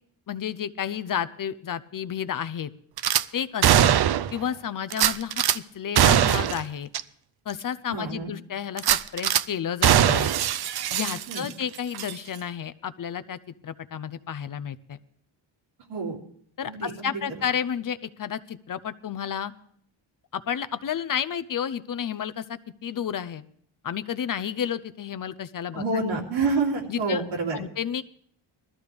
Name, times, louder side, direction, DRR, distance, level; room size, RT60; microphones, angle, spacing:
voice 1, 0.3-2.7 3.3-3.9 4.3-6.9 7.5-10.3 10.9-15.0 16.6-19.5 20.3-23.4 23.8-25.8 26.9-27.2 27.5-28.0, left 8 dB, 45° left, 15 dB, 0.6 m, -31 dB
Gunshot gunfire / Glass, 3.0-3.2 3.6-4.4 4.9-5.6 6.0-6.6 6.9-7.0 7.5-7.6 8.8-9.4 9.8-11.6 11.9-12.1, right 10 dB, 55° right, 0.6 m, -21 dB
voice 2, 7.9-8.3 11.3-11.5 15.9-16.2 16.7-17.2 25.7-27.6, right 3 dB, 80° right, -2 dB, 3.1 m, -28 dB
20.0 x 13.5 x 3.4 m, 0.63 s
cardioid pair, 100°, 48 cm